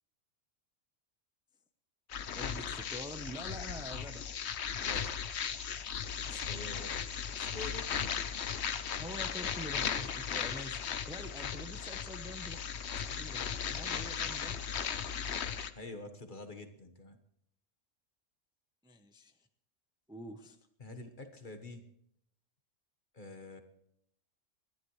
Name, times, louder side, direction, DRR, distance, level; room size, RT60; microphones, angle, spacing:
sound 1, 2.1-15.7, left 7 dB, 60° left, 1.0 m, -37 dB
voice 1, 2.3-4.3 6.4-6.8 9.0-12.6 12.9-14.5 18.8-19.3 20.1-20.6, equal, 5° right, 6 dB, 0.9 m, -46 dB
voice 2, 4.8-5.1 6.3-7.1 7.4-8.9 15.7-17.2 20.8-21.8 23.1-23.6, left 2 dB, 40° left, 7 dB, 1.4 m, -47 dB
28.5 x 11.5 x 3.2 m, 0.74 s
omnidirectional pair, 1.3 m